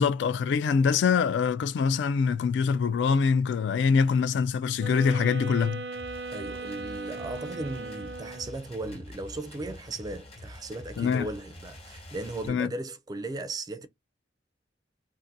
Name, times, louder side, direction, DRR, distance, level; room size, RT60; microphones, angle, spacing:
voice 1, 0.0-5.8 11.0-11.3 12.5-12.7, left 6 dB, 75° left, 0.3 m, -24 dB
sound 1, 4.8-8.7, right 3 dB, 90° right, 0.6 m, -38 dB
sound 2, 5.9-12.5, left 1 dB, 35° left, 1.0 m, -46 dB
voice 2, 6.3-13.9, right 2 dB, 20° right, 0.3 m, -37 dB
2.6 x 2.5 x 3.8 m
head